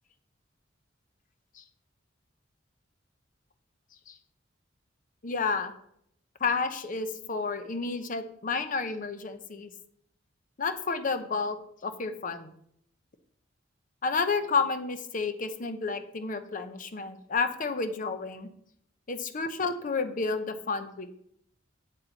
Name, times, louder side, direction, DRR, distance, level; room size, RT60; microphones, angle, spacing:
voice 1, 5.2-5.7 6.4-9.7 10.6-12.5 14.0-18.5 19.1-21.1, left 4 dB, 45° left, 10 dB, 0.7 m, -31 dB
7.9 x 7.4 x 4.1 m, 0.71 s
head